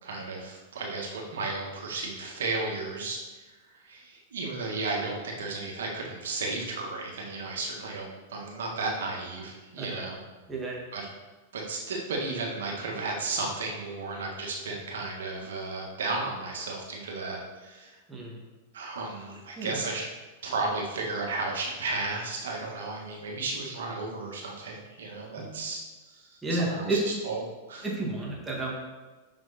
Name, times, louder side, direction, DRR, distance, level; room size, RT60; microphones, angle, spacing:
voice 1, 0.0-10.2 10.9-11.1 11.5-18.0 18.7-20.1 20.4-27.4 27.7-27.9, right 3 dB, 85° right, -1 dB, 1.8 m, -34 dB
voice 2, 10.5-10.8 18.1-18.4 19.6-19.8 25.4-25.5 26.4-27.0 27.8-28.8, right 2 dB, 10° right, -3 dB, 2.1 m, -31 dB
6.3 x 6.1 x 4.3 m, 1.3 s
hypercardioid pair, 120°, 0 cm